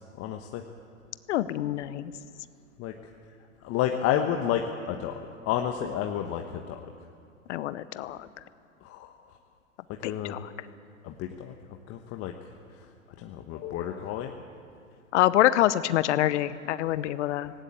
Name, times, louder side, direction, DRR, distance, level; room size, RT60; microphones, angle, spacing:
voice 1, 0.2-0.6 2.8-2.9 3.6-4.6 4.9-5.1 5.4-6.8 8.8-9.1 10.0-10.4 11.0-11.5 11.9-12.3 13.2-14.3, left 10 dB, 35° left, 4 dB, 1.3 m, -30 dB
voice 2, 1.3-2.1 7.5-8.2 10.0-10.4 15.1-17.5, left 14 dB, 60° left, 15 dB, 0.9 m, -25 dB
18.5 x 18.0 x 8.5 m, 2.4 s
hypercardioid pair, 110°, 39 cm